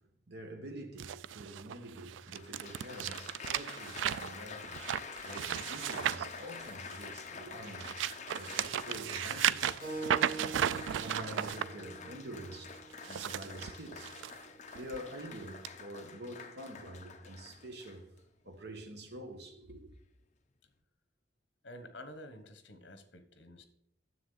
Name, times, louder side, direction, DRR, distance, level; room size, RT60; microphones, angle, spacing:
voice 1, 0.3-4.8 5.2-8.0 8.3-9.8 11.0-12.8 13.1-14.1 14.8-18.1 18.4-19.9, right 1 dB, 60° right, 1.3 m, -46 dB
sound 1, 1.0-7.1 7.6-11.6 12.9-14.3 14.7-15.0 15.6-15.7, right 10 dB, 85° right, 0.3 m, -35 dB
Applause, 2.3-18.2 18.9-19.3, left 5 dB, 40° left, 0.7 m, -48 dB
Keyboard (musical), 9.8-14.9, right 3 dB, 25° right, 4.1 m, -46 dB
voice 2, 21.6-23.6, left 1 dB, 70° left, 1.1 m, -50 dB
9.8 x 7.2 x 3.9 m
head